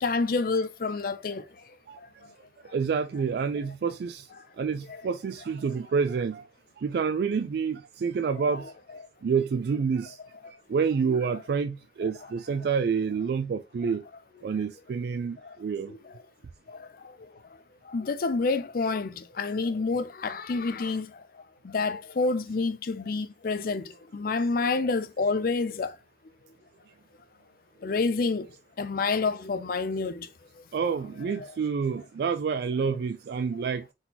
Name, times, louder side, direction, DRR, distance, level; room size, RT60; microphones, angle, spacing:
voice 1, 0.0-1.4 4.9-5.0 8.4-8.5 11.1-11.2 12.0-12.1 17.9-21.1 21.6-25.9 27.8-28.5 28.8-30.3 31.4-31.5, left 4 dB, 50° left, 0.4 m, -28 dB
voice 2, 2.7-4.3 4.6-6.4 6.8-8.7 9.2-10.2 10.7-14.0 14.4-15.9 30.7-33.8, right 6 dB, 60° right, 0.3 m, -28 dB
3.9 x 3.8 x 2.8 m
head